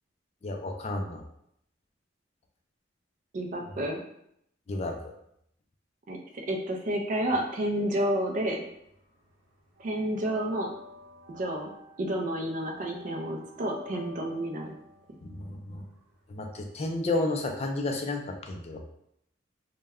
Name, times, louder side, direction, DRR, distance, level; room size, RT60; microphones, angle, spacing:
voice 1, 0.4-1.2 4.7-5.1 15.2-15.8 16.3-18.8, left 2 dB, 35° left, 3 dB, 0.3 m, -32 dB
voice 2, 3.3-4.0 6.1-6.2 6.5-8.6 9.8-10.7 11.3-11.7 12.0-14.7, right 1 dB, 45° right, 1 dB, 0.4 m, -30 dB
sound 1, 7.9-9.0 9.3-17.2, left 2 dB, 90° right, 0.7 m, -50 dB
2.2 x 2.1 x 3.4 m, 0.75 s
head